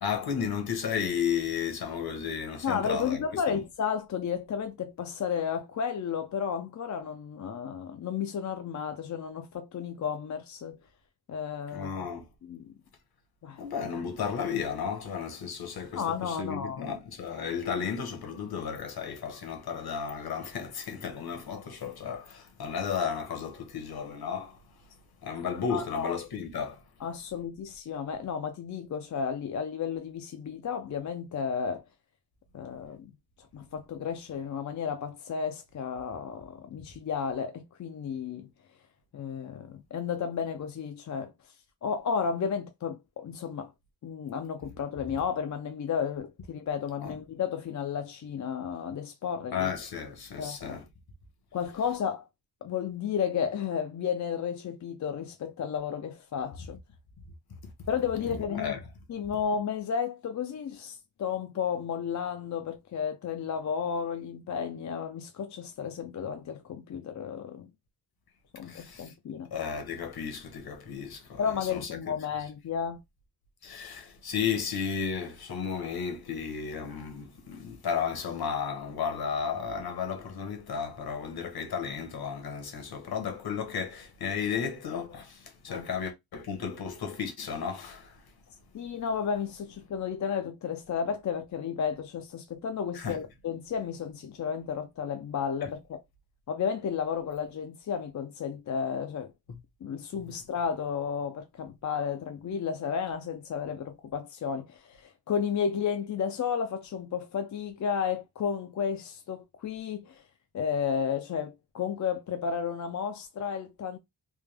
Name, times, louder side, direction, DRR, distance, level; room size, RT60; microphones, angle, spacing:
voice 1, 0.0-3.6 11.7-12.3 13.6-24.6 25.2-26.8 47.0-47.1 49.5-50.8 58.3-58.8 68.6-69.1 69.5-71.4 71.7-72.1 73.6-88.2 92.9-93.2, left 7 dB, 65° left, 1.2 m, -33 dB
voice 2, 2.6-10.8 11.3-12.1 12.4-12.7 13.4-13.7 15.9-16.9 17.5-17.9 25.7-26.2 27.0-31.8 32.5-33.1 33.5-38.5 39.1-41.3 41.8-43.7 44.0-49.7 50.4-50.8 51.5-52.3 52.6-56.8 57.9-58.8 59.1-67.7 68.5-69.5 71.4-73.0 85.7-85.9 88.7-96.0 96.5-99.3 99.8-110.2 110.5-114.0, left 7 dB, 45° left, 0.4 m, -33 dB
3.6 x 2.8 x 3.3 m
wide cardioid pair, 170°, 40 cm